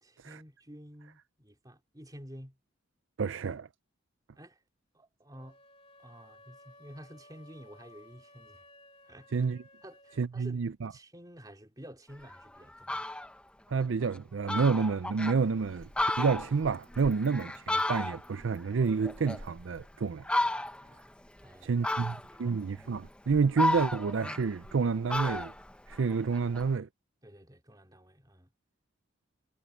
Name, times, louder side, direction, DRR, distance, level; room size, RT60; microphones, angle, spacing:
voice 1, 0.0-2.6 4.4-4.6 4.9-5.6 6.0-8.6 9.0-9.5 9.8-10.6 10.9-13.1 21.4-22.6 27.2-28.5, equal, 20° right, 3.5 m, -51 dB
voice 2, 3.2-3.7 9.3-9.6 10.2-10.9 13.7-15.9 16.2-20.2 21.6-25.5 25.9-26.9, right 5 dB, 70° right, 0.5 m, -29 dB
sound 1, 5.3-10.3, left 1 dB, 30° left, 2.7 m, -57 dB
Fowl, 12.2-12.3 12.7-13.3 13.8-13.9 14.2-14.3 14.5-15.4 15.8-18.4 18.8-19.8 20.2-20.9 21.8-22.5 23.0-24.8 25.1-26.7, left 1 dB, 5° left, 0.8 m, -32 dB
head